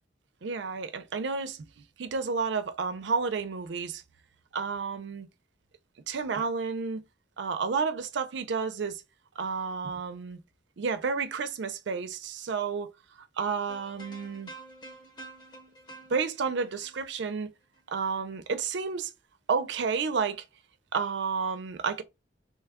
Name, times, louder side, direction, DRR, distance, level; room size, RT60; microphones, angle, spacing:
voice 1, 0.4-1.7 2.0-4.0 4.5-5.3 6.1-7.0 7.4-9.0 9.4-10.4 10.8-12.9 13.4-14.5 16.1-17.5 17.9-19.1 19.5-20.4 20.9-22.0, right 5 dB, 65° right, 0.4 m, -31 dB
sound 1, 13.7-18.0, right 2 dB, 25° left, 0.9 m, -49 dB
3.1 x 2.2 x 3.4 m
head